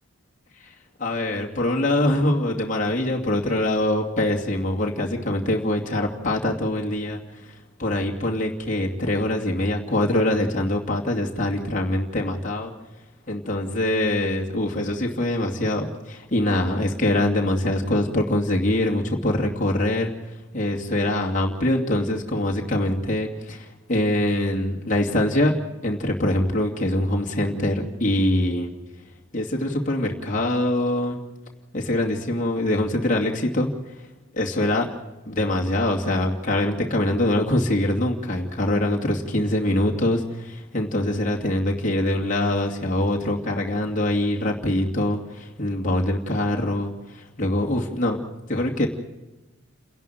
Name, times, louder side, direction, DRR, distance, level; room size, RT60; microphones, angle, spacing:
voice 1, 1.0-12.7 13.3-20.1 20.5-25.5 25.8-28.7 29.3-31.2 31.7-33.7 34.3-34.9 35.3-48.2 48.5-48.9, left 1 dB, 35° left, -1 dB, 2.5 m, -24 dB
29.5 x 11.0 x 9.2 m, 1.1 s
head